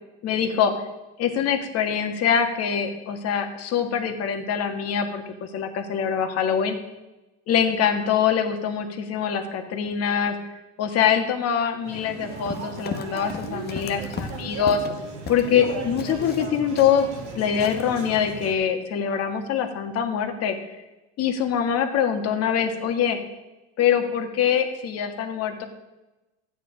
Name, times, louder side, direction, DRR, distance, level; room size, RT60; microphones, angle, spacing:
voice 1, 0.2-0.7 1.2-6.8 7.5-10.4 10.8-14.8 15.3-17.1 17.4-20.6 21.2-23.2 23.8-25.7, left 8 dB, 45° left, 6 dB, 1.8 m, -24 dB
sound 1, 11.8-18.5, right 4 dB, 85° right, 2.5 m, -36 dB
Run, 12.3-15.6 16.0-17.3 17.6-17.8, left 7 dB, 30° left, 1.0 m, -37 dB
13.0 x 9.2 x 5.1 m, 1.0 s
supercardioid pair, 120°, 34 cm